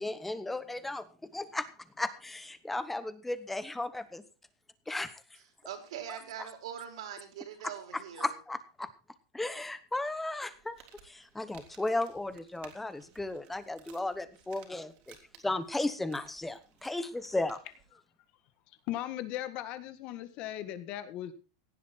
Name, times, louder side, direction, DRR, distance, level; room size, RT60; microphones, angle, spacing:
voice 1, 0.0-1.7 2.0-4.2 4.9-5.2 6.1-6.2 7.9-8.9 9.3-10.8 11.0-14.9 15.4-17.6, left 2 dB, 5° left, 14 dB, 1.0 m, -35 dB
voice 2, 5.6-8.3, right 9 dB, 75° right, 6 dB, 4.9 m, -42 dB
Crumpling crinkling, 10.5-17.9, right 8 dB, 40° right, 3.4 m, -59 dB
voice 3, 18.9-21.3, left 13 dB, 35° left, 12 dB, 1.7 m, -37 dB
17.0 x 11.5 x 4.4 m, 0.33 s
supercardioid pair, 165°, 3 cm